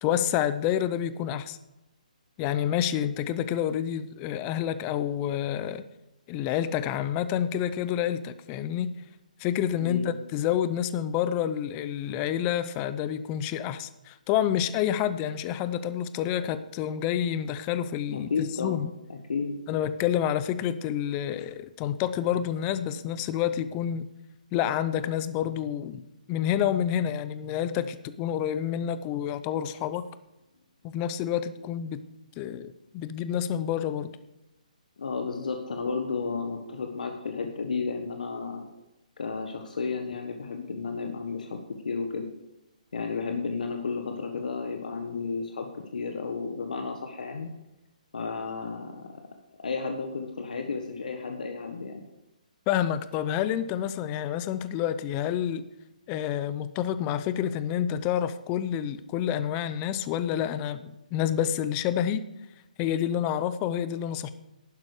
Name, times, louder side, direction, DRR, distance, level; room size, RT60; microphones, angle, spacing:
voice 1, 0.0-1.6 2.4-5.9 6.3-8.9 9.4-18.9 19.7-24.1 24.5-26.0 26.3-30.1 30.8-32.1 32.4-34.2 52.7-55.7 56.1-62.3 62.8-64.3, left 10 dB, 25° left, 0.6 m, -28 dB
voice 2, 9.8-10.1 18.1-18.8 19.1-19.5 35.0-38.7 39.2-41.6 41.8-42.3 42.9-47.5 48.1-49.1 49.6-52.0, left 4 dB, 75° left, 1.4 m, -32 dB
11.5 x 9.5 x 4.9 m
hypercardioid pair, 150°, 4 cm